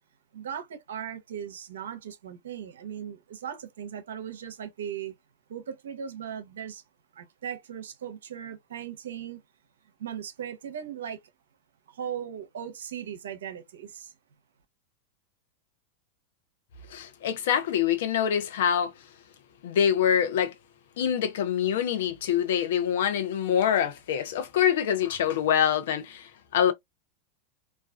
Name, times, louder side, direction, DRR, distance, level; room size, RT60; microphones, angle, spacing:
voice 1, 0.3-5.1 5.5-6.8 7.1-9.4 10.0-11.2 11.9-14.1, right 9 dB, 80° right, 0.6 m, -38 dB
voice 2, 16.9-18.9 19.6-20.5 21.0-26.7, left 9 dB, 75° left, 0.6 m, -25 dB
2.4 x 2.2 x 2.3 m
hypercardioid pair, 105°, 0 cm